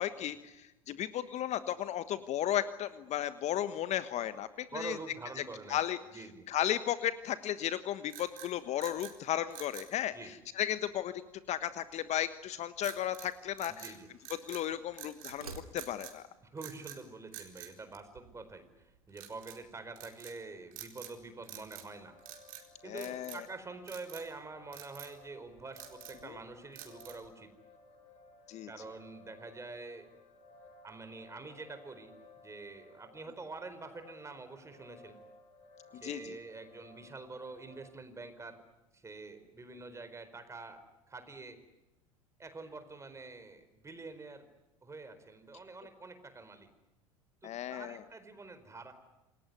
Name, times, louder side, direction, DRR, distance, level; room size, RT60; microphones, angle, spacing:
voice 1, 0.0-5.0 5.7-6.0 6.5-11.1 11.5-13.9 14.5-16.2 22.8-23.4 26.2-26.4 28.5-28.7 35.9-36.4 47.4-48.0, left 11 dB, 40° left, 13 dB, 1.3 m, -35 dB
voice 2, 4.7-5.8 6.1-6.5 10.1-10.3 13.7-14.1 16.5-18.7 19.1-22.2 22.8-27.5 28.7-30.1 30.8-32.1 32.4-35.2 35.9-38.6 38.9-40.8 41.1-41.6 42.4-44.5 44.8-46.7 47.4-48.9, right 3 dB, 15° right, 10 dB, 4.5 m, -46 dB
sound 1, 8.1-9.2 9.5-9.9 12.8-13.3 13.6-14.7 14.9-15.4 15.8-16.2 16.6-17.0 17.3-18.5 19.1-19.6 20.0-20.4 20.7-21.2 21.4-21.9 22.2-22.7 23.0-23.5 23.9-24.3 24.7-25.1 25.6-26.3 26.7-27.3, right 12 dB, 50° right, 4.3 m, -49 dB
sound 2, 11.8-12.5 13.4-14.5 15.2-16.2, right 4 dB, 85° right, 3.0 m, -52 dB
sound 3, 21.8-37.8, left 2 dB, 65° left, 7.5 m, -58 dB
27.5 x 21.0 x 9.5 m, 0.99 s
figure-of-eight pair, 75°, 18 cm